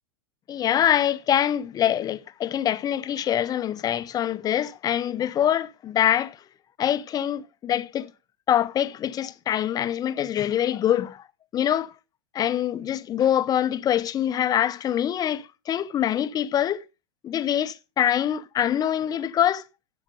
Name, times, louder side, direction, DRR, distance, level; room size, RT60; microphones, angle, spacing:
voice 1, 0.5-6.4 6.8-8.1 8.5-11.2 11.5-11.9 12.3-16.8 17.2-19.6, left 10 dB, 25° left, 0.9 m, -24 dB
12.5 x 8.2 x 5.1 m
figure-of-eight pair, 95°, 15 cm